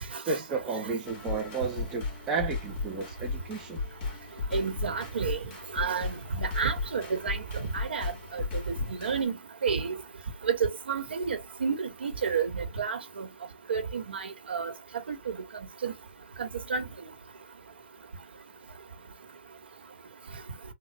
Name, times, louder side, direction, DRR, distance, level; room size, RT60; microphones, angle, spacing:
voice 1, 0.3-3.8, right 4 dB, 15° right, 0.9 m, -32 dB
sound 1, 1.1-9.2, left 4 dB, 25° left, 2.1 m, -36 dB
voice 2, 4.5-5.4 5.7-8.7 9.0-9.3 9.6-10.0 10.4-13.3 13.7-14.7 15.1-15.4 15.8-15.9 16.4-16.8, right 6 dB, 80° right, 1.5 m, -30 dB
3.9 x 2.5 x 3.1 m
hypercardioid pair, 160°, 6 cm